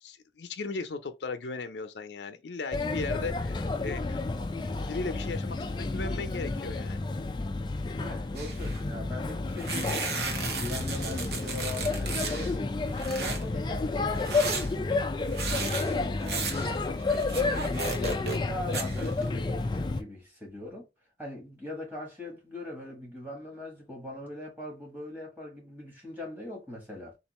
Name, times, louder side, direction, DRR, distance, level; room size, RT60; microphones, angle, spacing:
voice 1, 0.0-4.2 4.9-7.0, left 3 dB, 85° left, 0.5 m, -37 dB
Male speech man speaking / Child speech kid speaking / Chatter, 2.7-20.0, left 3 dB, 25° left, 0.3 m, -31 dB
voice 2, 8.0-12.8 13.2-15.0 15.4-20.9 21.2-27.2, left 1 dB, 10° right, 1.5 m, -41 dB
sound 1, 8.3-8.8 9.6-12.5 12.9-13.4 14.1-18.5 18.7-19.3, right 4 dB, 70° right, 0.8 m, -35 dB
3.6 x 2.6 x 3.0 m
head